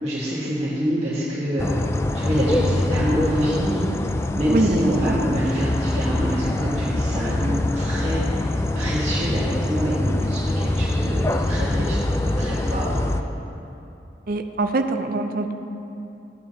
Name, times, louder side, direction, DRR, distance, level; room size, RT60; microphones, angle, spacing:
voice 1, 0.0-1.8 2.1-3.8 4.3-13.0, equal, 35° right, -9 dB, 1.4 m, -26 dB
sound 1, 1.6-13.2, left 1 dB, 15° left, 0.3 m, -24 dB
voice 2, 4.5-4.9 10.6-10.7 14.3-15.5, right 2 dB, 55° right, 6 dB, 0.6 m, -23 dB
14.5 x 9.3 x 2.8 m, 2.9 s
head